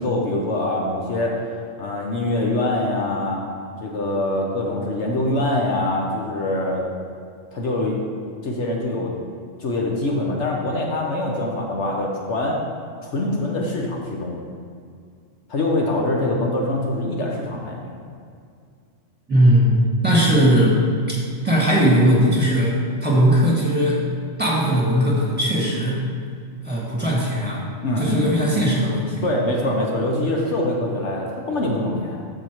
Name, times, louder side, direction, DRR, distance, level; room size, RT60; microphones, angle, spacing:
voice 1, 0.0-1.4 1.8-3.4 3.8-6.8 7.5-8.0 8.4-9.1 9.6-12.6 13.0-14.4 15.5-17.9 27.8-28.3 29.2-32.2, left 1 dB, 65° left, -1 dB, 1.2 m, -24 dB
voice 2, 19.3-20.8 21.4-22.8 23.0-24.0 24.4-26.0 26.6-27.6 28.0-29.3, equal, 10° right, -6 dB, 2.0 m, -18 dB
14.0 x 4.9 x 3.0 m, 2.2 s
omnidirectional pair, 1.3 m